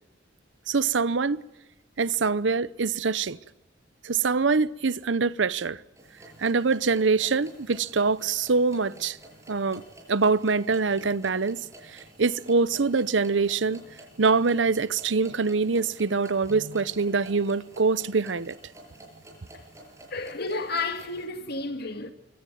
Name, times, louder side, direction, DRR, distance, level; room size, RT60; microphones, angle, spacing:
voice 1, 0.7-1.4 2.0-3.4 4.0-5.8 6.4-9.2 9.5-9.8 10.1-11.6 12.2-13.8 14.2-18.5, right 4 dB, 85° right, 0.8 m, -24 dB
sound 1, 6.0-21.3, right 1 dB, 15° right, 7.1 m, -50 dB
voice 2, 20.1-22.1, left 3 dB, 60° left, 2.3 m, -31 dB
24.5 x 16.5 x 9.2 m
head